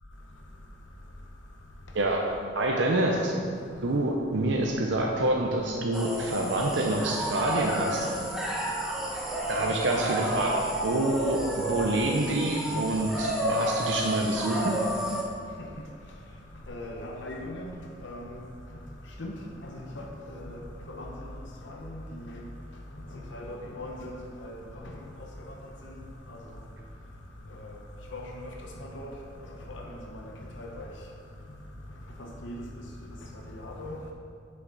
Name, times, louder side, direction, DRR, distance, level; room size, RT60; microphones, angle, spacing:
voice 1, 2.5-3.3 3.8-8.1 9.5-14.7, right 1 dB, 75° right, 0 dB, 0.7 m, -27 dB
sound 1, 5.9-15.2, right 1 dB, 5° right, 0.9 m, -31 dB
voice 2, 16.7-17.7 18.0-18.4 19.2-19.3 19.6-20.6 20.9-21.3 21.7-22.4 23.3-24.2 24.4-24.6 24.8-24.9 26.3-26.4 27.6-27.7 28.1-28.5 28.8-29.1 29.7-30.2 30.6-30.9 32.2-32.6 33.5-34.0, left 1 dB, 80° left, 0 dB, 0.8 m, -39 dB
9.7 x 5.8 x 3.9 m, 2.4 s
head